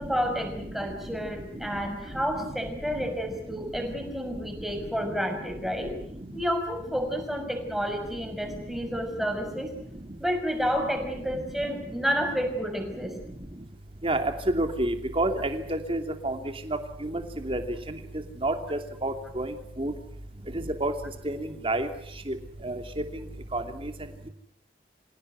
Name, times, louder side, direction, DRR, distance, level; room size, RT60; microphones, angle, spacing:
voice 1, 0.0-5.9 6.3-9.7 10.2-13.1, equal, ahead, 4 dB, 5.9 m, -30 dB
voice 2, 14.0-16.4 16.7-17.6 17.9-18.0 18.4-19.9 20.5-20.9 21.2-21.9 22.3-22.4 22.6-22.8 23.5-23.9, right 1 dB, 30° right, 6 dB, 2.8 m, -29 dB
27.0 x 17.0 x 9.5 m, 0.73 s
head